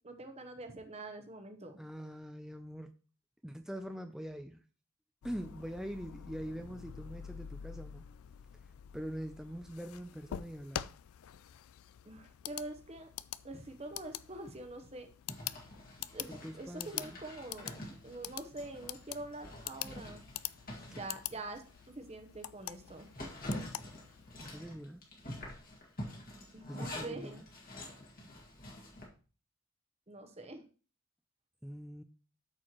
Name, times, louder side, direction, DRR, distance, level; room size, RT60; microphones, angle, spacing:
voice 1, 0.0-1.8 12.0-13.1 13.4-15.1 16.1-20.2 20.9-21.6 21.9-23.1 26.5-27.4 30.1-30.6, right 2 dB, 30° right, 7 dB, 0.9 m, -45 dB
voice 2, 1.8-2.9 3.4-4.6 5.2-8.0 8.9-10.9 16.3-17.2 24.5-25.0 26.7-27.4 31.6-32.0, equal, ahead, 6 dB, 0.4 m, -43 dB
sound 1, 5.2-24.4, left 11 dB, 75° left, 0.3 m, -46 dB
Zipper (clothing), 15.3-21.9 22.3-22.4 22.8-29.1, left 1 dB, 40° left, 1.8 m, -46 dB
13.0 x 4.5 x 3.0 m, 0.36 s
head